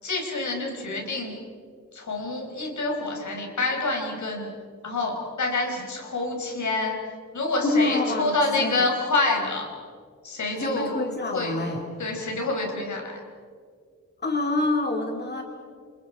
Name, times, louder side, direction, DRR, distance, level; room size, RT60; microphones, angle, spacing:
voice 1, 0.0-1.3 1.9-4.5 4.8-7.0 7.3-9.7 10.2-10.9 11.3-11.6 12.0-13.2, left 2 dB, 75° left, 2 dB, 4.7 m, -27 dB
voice 2, 7.6-8.8 10.6-11.8 14.2-15.4, left 2 dB, 35° left, 2 dB, 2.4 m, -26 dB
28.5 x 28.5 x 4.8 m, 2.1 s
wide cardioid pair, 145°, 29 cm